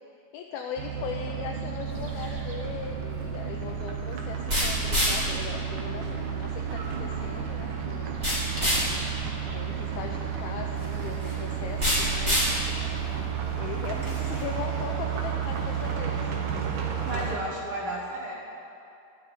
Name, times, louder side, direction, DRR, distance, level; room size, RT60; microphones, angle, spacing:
voice 1, 0.3-8.3 9.5-12.5 13.6-16.3 17.2-17.4, left 6 dB, 80° left, 2 dB, 2.5 m, -39 dB
sound 1, 0.8-17.4, right 8 dB, 65° right, 2.4 m, -32 dB
sound 2, 1.8-14.4, equal, 10° right, 2.8 m, -31 dB
voice 2, 17.0-18.3, right 1 dB, 90° right, -3 dB, 1.1 m, -33 dB
12.5 x 6.7 x 9.8 m, 2.7 s
omnidirectional pair, 4.4 m